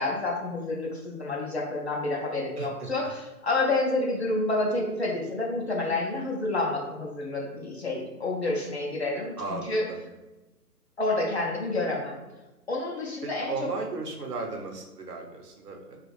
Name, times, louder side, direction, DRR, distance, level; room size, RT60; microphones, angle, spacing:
voice 1, 0.0-9.4 9.6-9.9 11.0-12.2 12.7-13.7, left 2 dB, 45° left, -1 dB, 0.5 m, -29 dB
voice 2, 2.6-2.9 9.4-10.0 13.2-16.0, right 3 dB, 75° right, 2 dB, 0.9 m, -35 dB
3.4 x 2.4 x 3.2 m, 1.1 s
hypercardioid pair, 165°, 48 cm